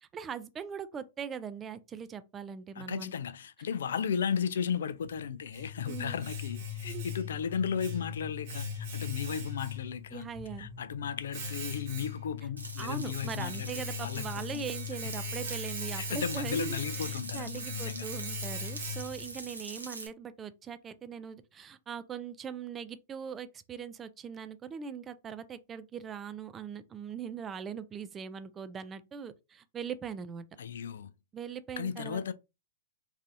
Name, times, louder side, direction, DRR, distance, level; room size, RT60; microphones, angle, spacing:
voice 1, 0.0-3.1 5.9-6.2 6.8-7.1 10.1-10.7 12.8-16.8 17.1-30.5 31.3-32.2, right 7 dB, 20° right, 0.4 m, -41 dB
voice 2, 2.8-10.3 10.6-13.7 14.0-14.7 15.0-15.1 15.9-18.1 30.6-31.1 31.8-32.3, left 7 dB, 65° left, 0.3 m, -35 dB
Domestic sounds home sounds, 5.0-19.4, left 4 dB, 50° right, 1.1 m, -39 dB
Frying (food), 12.6-20.1, right 3 dB, 90° right, 0.8 m, -44 dB
3.2 x 2.6 x 2.6 m
figure-of-eight pair, 110°, 0 cm